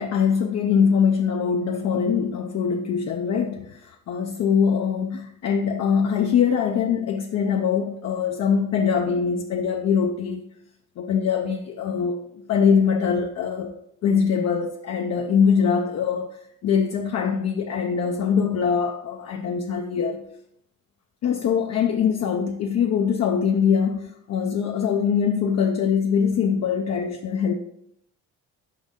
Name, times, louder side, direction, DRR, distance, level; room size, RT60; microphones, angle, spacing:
voice 1, 0.0-10.5 11.0-12.2 12.5-13.7 14.0-20.2 21.2-27.5, left 6 dB, 60° left, 0.6 m, -23 dB
5.2 x 3.9 x 5.1 m
cardioid pair, 90°, 30 cm